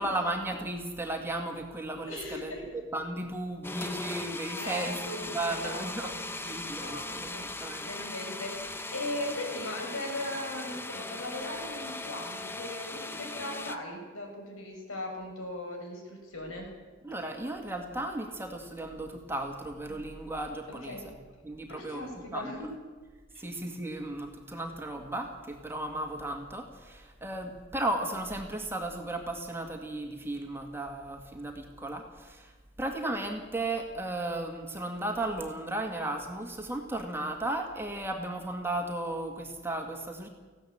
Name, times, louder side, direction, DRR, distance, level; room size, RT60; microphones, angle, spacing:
voice 1, 0.0-2.6 2.9-6.1 6.4-7.9 17.0-21.0 21.4-22.0 22.3-22.7 23.4-32.5 32.8-40.3, right 1 dB, 10° right, 2 dB, 2.0 m, -35 dB
voice 2, 2.1-2.6 4.5-6.1 6.7-7.5 7.8-16.7 19.9-20.0 20.8-21.0 21.7-22.7 23.3-23.4, left 1 dB, 85° left, 1 dB, 6.7 m, -38 dB
sound 1, 3.6-13.8, left 2 dB, 10° left, 0.8 m, -39 dB
19.0 x 15.5 x 8.8 m, 1.4 s
head